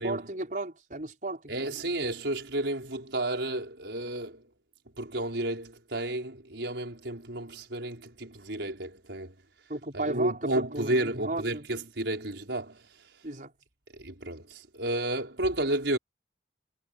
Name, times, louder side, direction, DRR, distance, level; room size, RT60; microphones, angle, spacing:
voice 1, 0.0-1.8 9.7-11.7 13.2-13.5, right 2 dB, 50° right, 5.3 m, -35 dB
voice 2, 1.5-4.5 5.0-9.4 9.9-13.1 13.9-16.0, right 1 dB, 90° right, 5.0 m, -32 dB
head